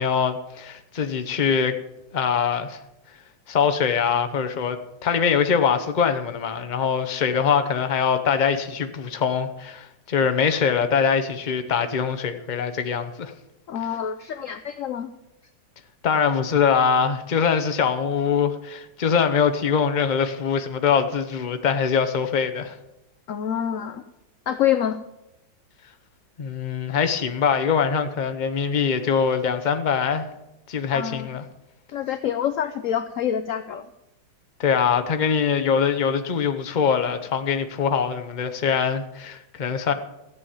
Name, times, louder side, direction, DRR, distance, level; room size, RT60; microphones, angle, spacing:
voice 1, 0.0-1.7 2.1-2.8 3.5-13.3 16.0-22.7 26.4-30.3 30.7-31.4 34.6-39.9, left 6 dB, 35° left, 8 dB, 0.7 m, -23 dB
voice 2, 13.7-15.1 23.3-24.0 24.5-25.0 30.9-31.3 31.9-33.9, left 9 dB, 70° left, 9 dB, 0.7 m, -26 dB
14.5 x 8.3 x 7.1 m, 0.91 s
omnidirectional pair, 2.0 m